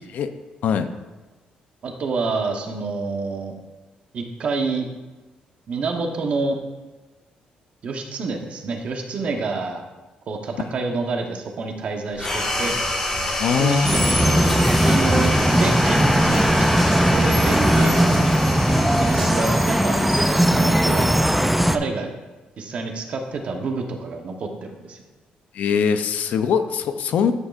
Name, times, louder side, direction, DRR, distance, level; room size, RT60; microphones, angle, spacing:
voice 1, 1.8-3.6 4.1-4.9 5.7-6.6 7.8-9.8 10.3-12.8 13.6-18.3 19.0-21.3 21.7-22.1 22.6-25.0, right 4 dB, 45° right, 3 dB, 0.9 m, -28 dB
sound 1, 12.1-19.4, right 1 dB, 90° right, 2.4 m, -37 dB
sound 2, 12.2-21.1, left 1 dB, 25° left, 1.6 m, -28 dB
voice 2, 13.4-13.9 14.2-14.3 17.8-17.9 25.5-27.3, left 7 dB, 65° left, 9 dB, 0.5 m, -22 dB
sound 3, 13.8-21.8, equal, ahead, 0.4 m, -18 dB
11.0 x 6.4 x 2.4 m, 1.2 s
cardioid pair, 145°, 3 cm